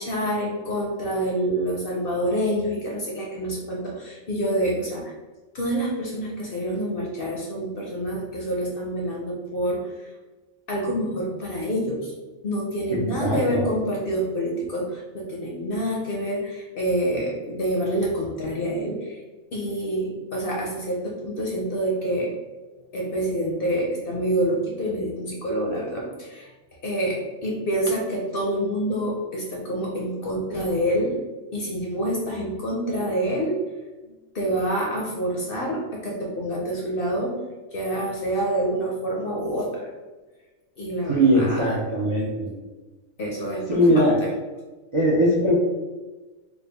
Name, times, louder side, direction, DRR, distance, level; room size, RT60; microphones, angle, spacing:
voice 1, 0.0-5.1 5.5-9.9 10.7-12.1 12.4-19.2 19.5-22.3 22.9-26.5 26.8-31.2 31.5-33.6 34.0-37.4 37.7-39.9 40.8-41.9 43.2-44.3, right 1 dB, 55° left, -2 dB, 0.7 m, -27 dB
voice 2, 12.9-13.7 41.1-42.5 43.7-44.2 44.9-45.6, equal, 40° right, -5 dB, 0.4 m, -20 dB
3.4 x 2.2 x 3.4 m, 1.2 s
omnidirectional pair, 1.4 m